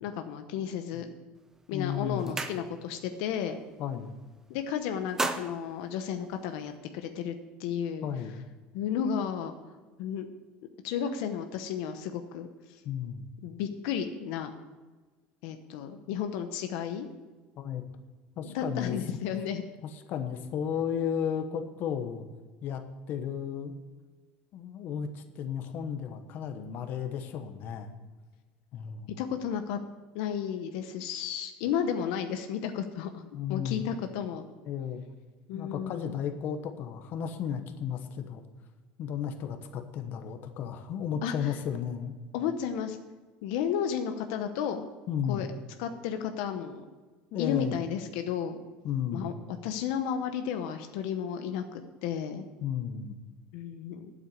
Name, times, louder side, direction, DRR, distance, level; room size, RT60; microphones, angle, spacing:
voice 1, 0.0-1.1 1.7-3.6 4.5-7.3 7.6-8.0 8.7-9.6 10.0-10.3 10.8-12.8 13.4-14.5 15.4-17.1 18.4-19.6 29.2-29.8 30.1-33.2 33.5-34.5 35.5-36.1 41.2-41.5 42.3-43.0 43.4-44.9 45.3-45.5 45.8-46.8 47.4-48.6 49.1-49.3 49.6-52.5 53.5-54.1, left 8 dB, 80° left, 7 dB, 0.9 m, -33 dB
sound 1, 1.4-1.6 1.9-3.1 3.4-3.7 4.0-4.6 4.9-6.8, right 2 dB, 10° right, 0.8 m, -36 dB
voice 2, 1.7-2.3 3.8-4.1 8.0-8.4 12.8-13.2 17.6-17.8 18.4-19.0 20.1-22.3 22.6-23.7 24.5-27.9 28.7-29.1 33.3-33.8 34.7-35.0 35.5-38.4 39.0-42.1 45.1-45.5 47.3-47.8 48.8-49.3 52.6-53.2, left 8 dB, 50° left, 7 dB, 1.1 m, -34 dB
9.2 x 7.9 x 8.0 m, 1.3 s
cardioid pair, 140°, 4 cm